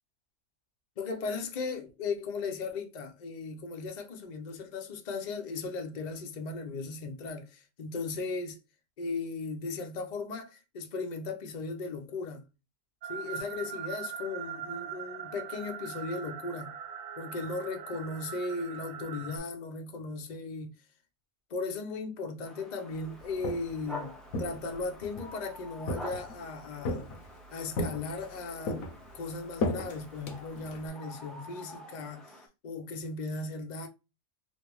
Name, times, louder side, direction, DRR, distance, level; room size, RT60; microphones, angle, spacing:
voice 1, 1.0-8.6 9.0-12.4 13.1-16.8 17.2-20.7 21.5-27.2 27.5-28.8 29.1-33.9, left 3 dB, 45° left, 0.6 m, -37 dB
sound 1, 13.0-19.4, right 8 dB, 75° right, 1.1 m, -41 dB
sound 2, 22.4-32.5, left 1 dB, ahead, 0.3 m, -48 dB
Walk footsteps, 23.2-23.8 24.3-25.3 25.9-26.4 26.9-27.4 27.8-28.4 28.7-30.9, left 2 dB, 80° left, 1.2 m, -35 dB
3.2 x 2.6 x 3.0 m
omnidirectional pair, 1.5 m